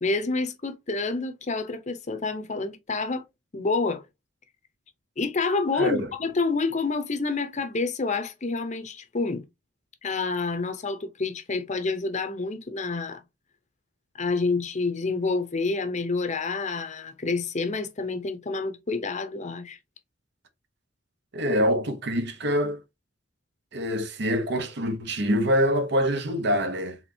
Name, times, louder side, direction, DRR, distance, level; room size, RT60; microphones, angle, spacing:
voice 1, 0.0-3.2 3.5-4.0 5.2-9.4 10.0-13.2 14.1-19.8, left 3 dB, 40° left, 0.8 m, -28 dB
voice 2, 5.8-6.1 21.3-22.8 23.7-27.0, equal, 65° right, 0.9 m, -25 dB
4.3 x 3.9 x 2.7 m
head